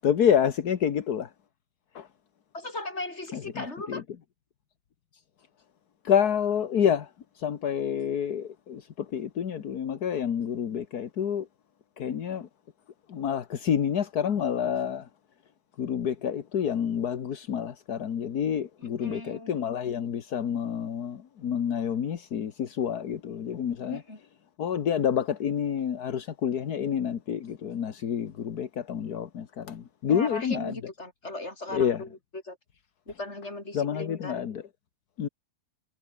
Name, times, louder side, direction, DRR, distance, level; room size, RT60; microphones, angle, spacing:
voice 1, 0.0-1.3 2.0-2.1 3.3-4.0 6.0-7.1 7.4-11.5 12.0-12.5 13.1-15.1 15.8-24.0 24.6-30.8 31.7-32.0 33.7-34.6 35.2-35.3, left 8 dB, 75° left, 1.9 m, -28 dB
voice 2, 2.5-4.0 18.8-19.5 23.9-24.2 30.1-32.1 32.4-32.6 33.1-34.4, left 2 dB, 45° left, 5.9 m, -37 dB
omnidirectional pair, 1.7 m